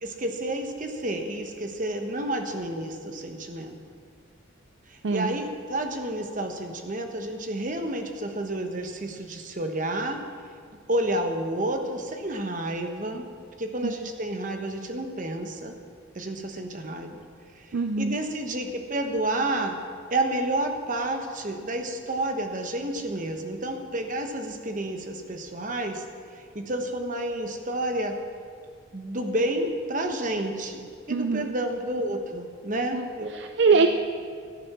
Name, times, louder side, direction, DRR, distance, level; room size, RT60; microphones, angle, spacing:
voice 1, 0.0-3.8 4.9-10.2 10.9-13.2 13.6-15.8 16.1-17.2 17.5-19.8 20.1-26.0 26.3-28.1 28.9-33.3 33.7-33.9, right 1 dB, 40° right, 5 dB, 1.1 m, -30 dB
voice 2, 5.0-5.4 13.8-13.9 17.7-18.2 31.1-31.5 32.9-33.1 33.3-33.9, right 4 dB, 60° right, 6 dB, 0.4 m, -23 dB
13.0 x 8.7 x 6.1 m, 2.1 s
head